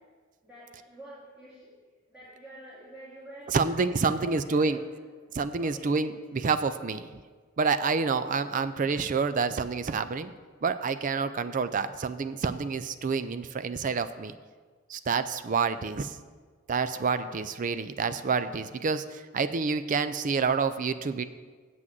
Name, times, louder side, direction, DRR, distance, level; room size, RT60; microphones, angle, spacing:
voice 1, 0.4-1.7 2.1-3.7 4.1-4.9 5.6-5.9 8.0-8.1 17.2-17.3, right 1 dB, 5° right, -11 dB, 2.3 m, -47 dB
voice 2, 3.5-4.8 5.3-7.1 7.6-10.3 10.6-14.4 14.9-16.2 16.7-21.2, right 5 dB, 35° right, 11 dB, 0.4 m, -28 dB
7.7 x 6.1 x 7.4 m, 1.5 s
head